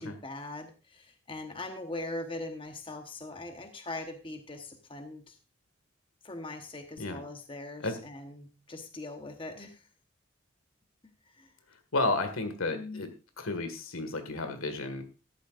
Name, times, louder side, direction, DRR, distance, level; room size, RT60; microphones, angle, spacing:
voice 1, 0.0-5.4 6.2-9.9 11.2-11.5 12.7-13.1, left 2 dB, 25° left, 6 dB, 1.1 m, -41 dB
voice 2, 11.9-13.1 13.4-15.0, left 2 dB, 85° left, 8 dB, 1.8 m, -32 dB
13.5 x 11.5 x 2.5 m, 0.31 s
head